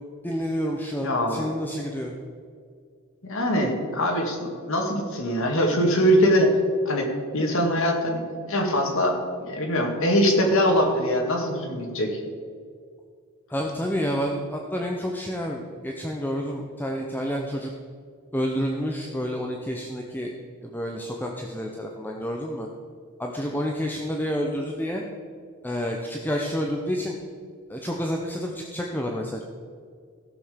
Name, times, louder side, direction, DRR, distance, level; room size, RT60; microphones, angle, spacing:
voice 1, 0.2-2.1 13.5-17.7 18.3-20.3 20.6-22.7 23.2-25.0 25.6-27.1 27.7-29.4, equal, 10° left, 0 dB, 0.8 m, -29 dB
voice 2, 1.0-1.5 3.2-6.6 6.9-7.1 7.3-12.2, equal, 65° left, 2 dB, 2.1 m, -23 dB
16.0 x 6.9 x 5.1 m, 2.1 s
head